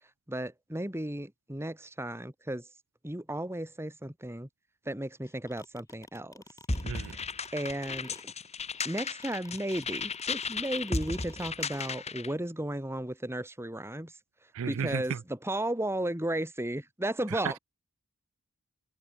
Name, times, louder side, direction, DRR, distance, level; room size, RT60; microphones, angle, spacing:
voice 1, 0.3-2.7 3.0-4.5 4.8-6.4 7.0-7.3 7.5-8.1 8.8-14.1 14.6-17.6, right 1 dB, 10° right, 2.6 m, -34 dB
sound 1, 5.2-12.0, left 2 dB, 15° left, 2.2 m, -50 dB
sound 2, 6.7-12.3, left 4 dB, 30° left, 3.5 m, -35 dB
voice 2, 14.5-15.2 17.3-17.6, right 7 dB, 65° right, 0.4 m, -34 dB
head